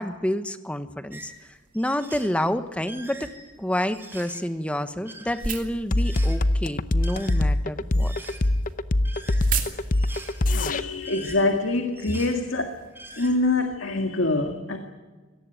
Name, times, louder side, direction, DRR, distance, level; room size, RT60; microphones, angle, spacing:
voice 1, 0.0-3.3 3.6-8.1, left 1 dB, 5° left, 10 dB, 1.1 m, -29 dB
sound 1, 1.1-1.3 1.7-2.4 2.8-4.4 4.9-5.6 5.9-6.4 6.9-7.6 7.9-8.5 9.0-9.6 9.9-10.4 10.8-11.6 12.0-12.4 12.7-13.3, right 2 dB, 10° right, 4.2 m, -44 dB
sound 2, 1.1-13.8, right 7 dB, 40° right, 2.7 m, -40 dB
sound 3, 5.9-10.8, left 1 dB, 45° left, 0.8 m, -22 dB
voice 2, 10.5-12.8 13.2-14.8, left 2 dB, 80° left, 5 dB, 1.9 m, -25 dB
25.0 x 18.5 x 9.1 m, 1.3 s
head